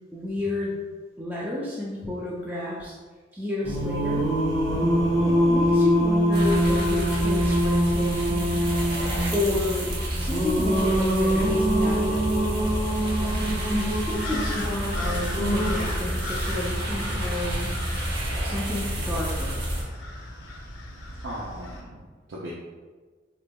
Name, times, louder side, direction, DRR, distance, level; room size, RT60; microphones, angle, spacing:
voice 1, 0.1-0.8 1.2-2.9 3.3-4.2 5.2-8.6 9.3-9.9 10.2-12.3 13.7-17.7 18.4-19.6, left 2 dB, 10° right, -6 dB, 0.4 m, -31 dB
Singing, 3.6-15.7, equal, 35° right, 1.4 m, -24 dB
sound 1, 6.3-19.8, equal, 60° right, 0.9 m, -30 dB
sound 2, 14.1-21.8, left 1 dB, 80° left, 0.7 m, -36 dB
voice 2, 21.2-22.5, right 1 dB, 80° right, -4 dB, 0.5 m, -38 dB
3.9 x 3.4 x 2.2 m, 1.4 s
head